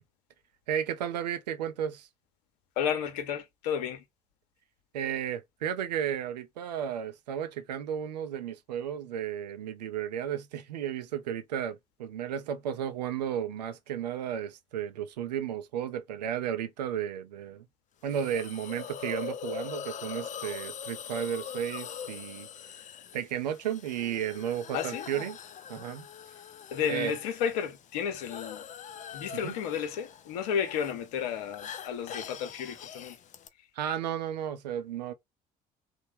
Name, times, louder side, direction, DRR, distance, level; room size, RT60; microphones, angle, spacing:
voice 1, 0.7-2.1 4.9-17.7 18.0-22.5 23.1-25.4 25.7-26.1 26.9-27.2 29.4-29.5 33.7-35.1, right 9 dB, 85° right, 0.4 m, -33 dB
voice 2, 2.8-4.0 24.7-25.0 26.7-28.6 29.1-33.2, left 8 dB, 70° left, 0.7 m, -32 dB
Hiss, 18.1-33.5, left 8 dB, 40° left, 0.5 m, -43 dB
3.1 x 2.1 x 3.4 m
hypercardioid pair, 55°, 21 cm